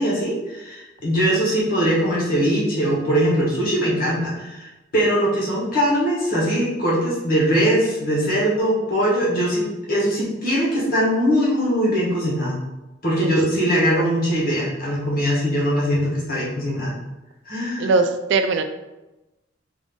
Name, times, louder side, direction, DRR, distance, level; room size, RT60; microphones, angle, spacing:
voice 1, 0.0-12.6 13.0-16.9 17.4-17.9, equal, 50° left, -6 dB, 1.3 m, -21 dB
voice 2, 17.8-18.6, right 4 dB, 65° right, 7 dB, 0.3 m, -20 dB
3.5 x 2.5 x 3.6 m, 1.0 s
head